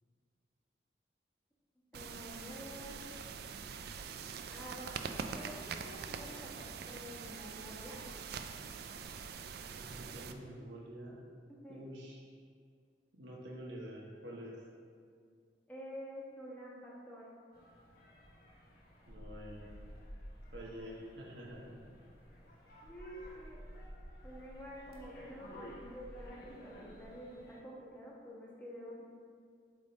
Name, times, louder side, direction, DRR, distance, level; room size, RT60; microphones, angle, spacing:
voice 1, 1.9-3.0 4.5-4.9 5.3-8.0 11.6-11.8 15.7-17.3 22.8-23.6 24.2-29.1, equal, 10° left, -5 dB, 1.2 m, -49 dB
sound 1, 1.9-10.3, right 6 dB, 60° right, 0.4 m, -44 dB
voice 2, 9.7-11.2 11.7-12.2 13.1-14.6 19.1-19.7 20.5-21.8, equal, 90° right, -2 dB, 1.0 m, -47 dB
sound 2, 17.5-27.6, equal, 60° left, 1.1 m, -52 dB
8.0 x 3.5 x 4.0 m, 2.1 s
head